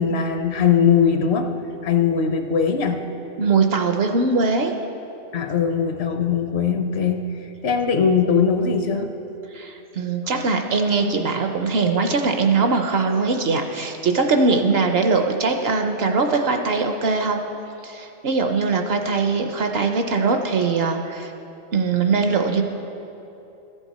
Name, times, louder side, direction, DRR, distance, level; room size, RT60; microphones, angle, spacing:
voice 1, 0.0-1.5 1.8-3.0 5.3-9.1, left 6 dB, 60° left, 6 dB, 0.9 m, -20 dB
voice 2, 3.4-4.7 9.5-17.4 17.8-21.3 21.7-22.6, right 4 dB, 60° right, 5 dB, 0.8 m, -21 dB
14.5 x 7.3 x 4.1 m, 3.0 s
omnidirectional pair, 1.3 m